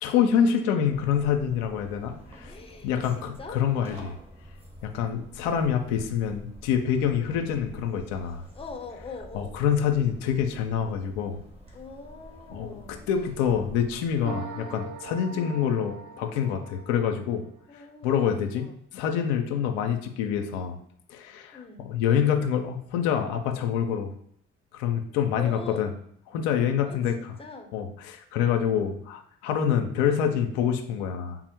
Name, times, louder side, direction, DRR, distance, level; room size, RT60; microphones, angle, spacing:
voice 1, 0.0-2.5 2.8-4.2 4.8-8.4 9.3-11.4 12.5-17.4 17.7-18.7 18.9-20.8 21.1-24.1 24.7-25.9 26.3-27.3 27.7-31.4, left 8 dB, 80° left, 4 dB, 0.5 m, -26 dB
sound 1, 0.9-14.3, equal, 15° right, 1.3 m, -47 dB
voice 2, 2.5-3.6 7.2-7.5 8.5-9.8 11.7-13.0 15.3-15.7 17.7-18.7 21.5-21.9 25.3-25.9 26.8-27.7, left 4 dB, 15° left, 3 dB, 0.8 m, -43 dB
sound 2, 14.2-17.6, right 5 dB, 55° right, 0.6 m, -41 dB
3.7 x 2.0 x 4.4 m, 0.70 s
hypercardioid pair, 55°, 36 cm